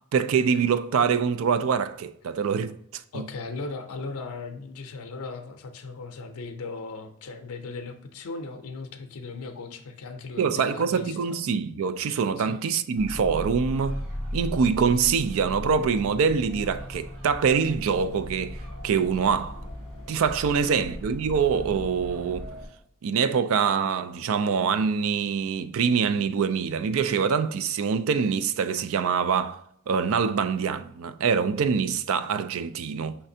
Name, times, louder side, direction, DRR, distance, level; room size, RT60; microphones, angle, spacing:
voice 1, 0.0-3.3 10.4-14.0 14.3-19.6 20.1-22.5 23.0-33.2, right 6 dB, 65° right, 0.3 m, -25 dB
voice 2, 3.1-11.4 12.4-12.6 20.5-20.9, left 3 dB, 80° left, 0.5 m, -38 dB
sound 1, 12.9-22.7, equal, 85° right, 1.9 m, -37 dB
5.7 x 3.3 x 2.7 m
head